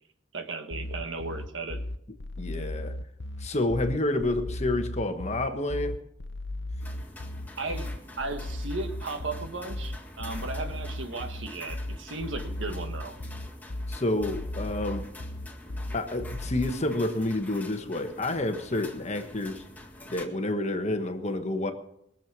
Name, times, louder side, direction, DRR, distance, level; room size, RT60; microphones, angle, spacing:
voice 1, 0.3-1.8 7.6-7.9 8.2-13.2, right 3 dB, 80° right, 6 dB, 1.6 m, -35 dB
sound 1, 0.7-16.7, left 1 dB, 65° left, 0.9 m, -36 dB
voice 2, 2.4-2.9 3.4-6.0 13.9-15.0 15.9-19.6 20.1-21.7, left 2 dB, 35° left, 7 dB, 1.3 m, -29 dB
sound 2, 6.8-20.3, left 1 dB, 10° left, 1.8 m, -47 dB
22.0 x 7.6 x 6.2 m, 0.77 s
head